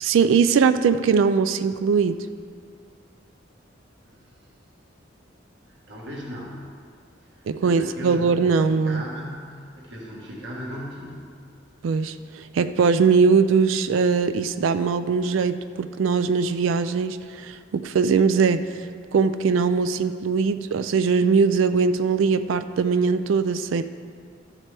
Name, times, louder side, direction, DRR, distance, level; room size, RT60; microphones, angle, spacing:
voice 1, 0.0-2.3 7.5-9.0 11.8-18.9 19.1-23.8, right 5 dB, 85° right, 11 dB, 0.4 m, -21 dB
voice 2, 5.7-6.6 7.3-11.3, equal, 65° right, -4 dB, 1.6 m, -37 dB
13.5 x 7.4 x 3.4 m, 2.1 s
head